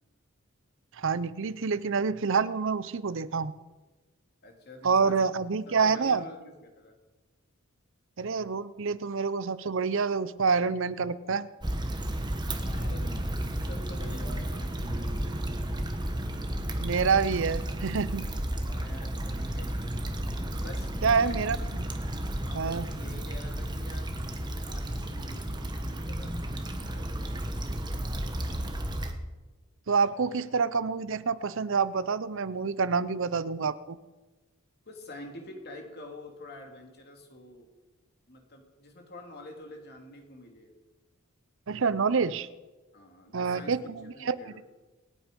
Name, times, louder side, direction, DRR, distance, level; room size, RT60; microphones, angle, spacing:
voice 1, 0.9-3.5 4.8-6.2 8.2-11.5 16.8-18.3 21.0-21.6 22.5-22.9 29.9-34.0 41.7-42.5 43.3-44.6, right 5 dB, 60° right, 16 dB, 0.6 m, -27 dB
voice 2, 4.4-5.3 5.7-7.0 12.5-15.4 18.6-20.0 20.6-21.4 22.4-28.5 34.9-37.7 38.3-40.7 42.9-43.8 44.0-44.6, left 1 dB, 50° left, 2 dB, 2.8 m, -48 dB
Stream / Traffic noise roadway noise / Trickle dribble, 11.6-29.1, right 1 dB, 20° right, 1.2 m, -33 dB
Guitar, 14.8-20.2, right 2 dB, 45° right, 1.8 m, -51 dB
26.0 x 8.9 x 5.3 m, 1.2 s
head